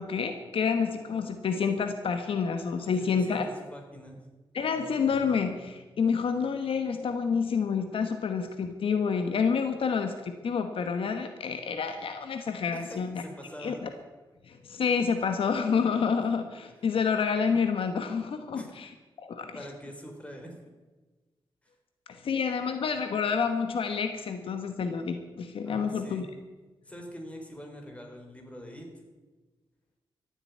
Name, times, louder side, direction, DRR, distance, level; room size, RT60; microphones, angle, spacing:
voice 1, 0.0-3.5 4.5-13.2 13.6-13.9 14.5-18.9 19.2-19.6 22.1-26.3, left 6 dB, 75° left, 7 dB, 1.2 m, -28 dB
voice 2, 2.8-4.2 12.7-13.8 18.5-18.7 19.5-20.7 25.6-26.3 26.9-28.9, equal, 15° left, 2 dB, 4.0 m, -44 dB
14.5 x 7.9 x 9.5 m, 1.2 s
cardioid pair, 85°, 9 cm